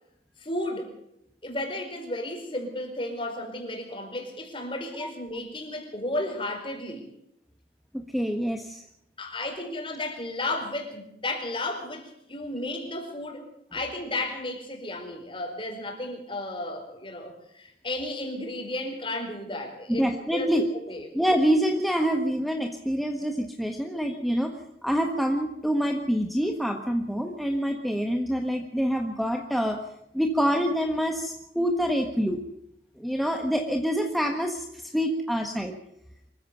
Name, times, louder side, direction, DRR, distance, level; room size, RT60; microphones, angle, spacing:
voice 1, 0.4-0.9 1.4-7.0 9.2-21.1, left 1 dB, 30° left, 4 dB, 4.8 m, -33 dB
voice 2, 7.9-8.8 19.9-20.6 21.1-24.5 24.8-29.8 30.1-32.4 33.0-35.7, equal, ahead, 2 dB, 1.4 m, -26 dB
25.0 x 15.0 x 7.0 m, 0.78 s
head